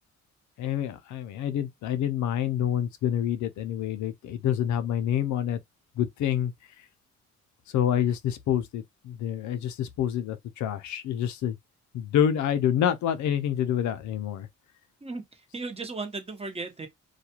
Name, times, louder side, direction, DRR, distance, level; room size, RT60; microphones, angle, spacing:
voice 1, 0.6-5.6 6.0-6.5 7.7-11.6 11.9-14.5, left 10 dB, 70° left, 0.5 m, -27 dB
voice 2, 15.0-16.9, right 3 dB, 20° right, 0.9 m, -36 dB
2.4 x 2.2 x 2.9 m
cardioid pair, 90°, 30 cm